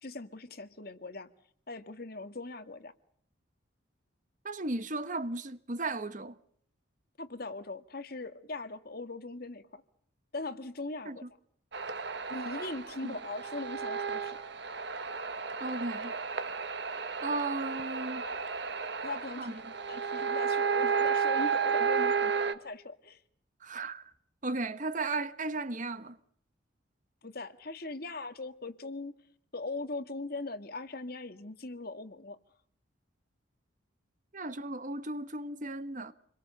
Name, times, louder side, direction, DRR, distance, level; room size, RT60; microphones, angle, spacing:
voice 1, 0.0-1.3 1.7-2.9 7.2-9.8 10.3-11.2 12.3-14.4 19.0-19.6 19.9-23.2 27.2-29.1 29.5-32.4, left 3 dB, 50° left, 1.8 m, -40 dB
voice 2, 4.4-6.3 11.0-11.2 13.0-13.2 15.6-16.1 17.2-18.2 19.4-19.5 23.6-24.1 24.4-26.2 34.3-36.1, right 2 dB, 40° right, 1.3 m, -35 dB
sound 1, 11.7-22.5, right 6 dB, 55° right, 1.7 m, -32 dB
28.5 x 22.5 x 6.8 m
head